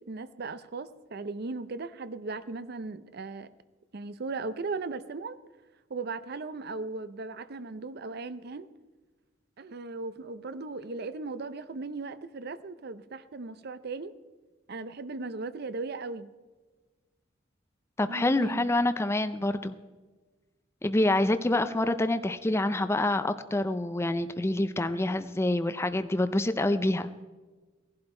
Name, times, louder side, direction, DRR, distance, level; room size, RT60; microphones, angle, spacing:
voice 1, 0.1-3.5 3.9-5.4 5.9-8.7 9.6-14.1 14.7-16.3 18.1-18.7, right 3 dB, 55° right, 13 dB, 0.6 m, -37 dB
voice 2, 18.0-19.8 20.8-27.1, left 1 dB, 15° left, 11 dB, 0.4 m, -27 dB
17.0 x 11.5 x 4.4 m, 1.3 s
head